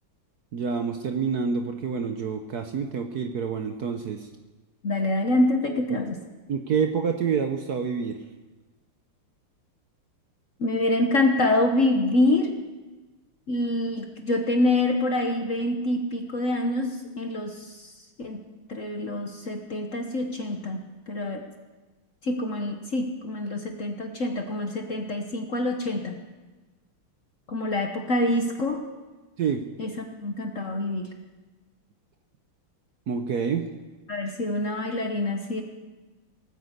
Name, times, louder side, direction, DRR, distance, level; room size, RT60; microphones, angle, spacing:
voice 1, 0.5-4.3 5.9-6.0 6.5-8.2 29.4-29.6 33.1-33.7, right 6 dB, 60° right, 6 dB, 1.1 m, -27 dB
voice 2, 4.8-6.2 10.6-12.6 13.5-17.9 18.2-18.4 18.7-20.8 21.1-21.4 22.2-26.1 27.5-28.8 29.8-29.9 30.2-31.1 34.1-35.6, left 2 dB, 45° left, 4 dB, 1.2 m, -26 dB
18.0 x 9.5 x 8.0 m, 1.2 s
omnidirectional pair, 2.4 m